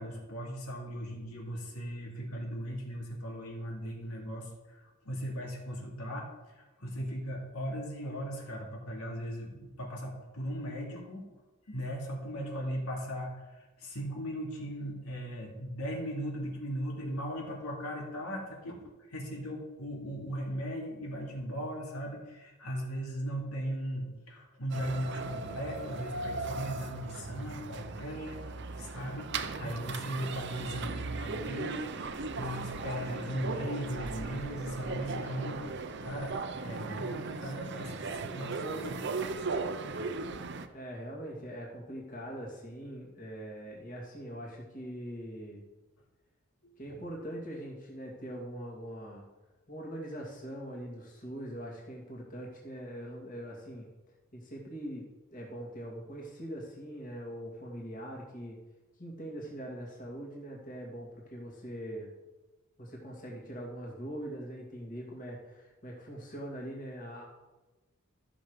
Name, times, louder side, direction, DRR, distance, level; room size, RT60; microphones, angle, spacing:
voice 1, 0.0-11.3 11.7-28.4 28.8-35.7 36.0-39.0 46.6-46.8, equal, 90° left, -2 dB, 2.8 m, -38 dB
sound 1, 24.7-40.7, right 3 dB, 50° right, 0.7 m, -37 dB
voice 2, 40.7-45.6 46.8-49.3 49.7-53.9 54.3-55.1 55.3-58.6 59.0-62.1 62.8-67.2, equal, 35° left, -3 dB, 2.3 m, -42 dB
13.5 x 6.3 x 5.2 m, 1.1 s
head